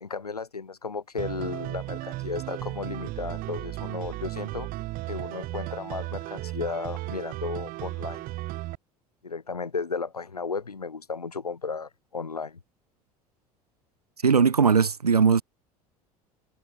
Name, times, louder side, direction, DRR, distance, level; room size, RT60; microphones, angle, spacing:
voice 1, 0.0-4.7 5.1-8.2 9.2-12.6, left 5 dB, 85° left, 0.8 m, -34 dB
sound 1, 1.2-8.8, right 18 dB, 50° right, 2.8 m, -35 dB
voice 2, 14.2-15.4, right 6 dB, 85° right, 0.9 m, -19 dB
figure-of-eight pair, 65°, 19 cm